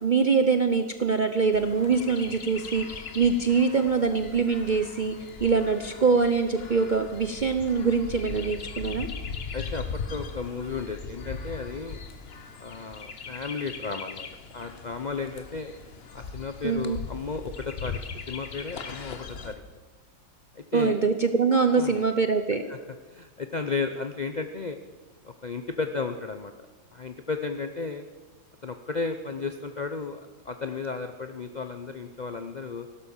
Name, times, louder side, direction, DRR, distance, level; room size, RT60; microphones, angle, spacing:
voice 1, 0.0-5.2 5.4-9.1 16.6-17.0 20.7-22.7, right 5 dB, 60° right, 8 dB, 0.5 m, -24 dB
Chirp tweet, 1.5-19.5, left 5 dB, 40° left, 1.1 m, -39 dB
voice 2, 9.5-12.0 12.6-14.3 14.5-15.7 16.1-18.0 18.3-19.6 20.5-21.0 21.7-22.0 22.7-22.8 23.1-24.8 25.2-26.5 26.9-28.0 28.6-32.9, left 4 dB, 80° left, 7 dB, 0.4 m, -34 dB
16.0 x 12.0 x 7.2 m, 1.3 s
omnidirectional pair, 1.9 m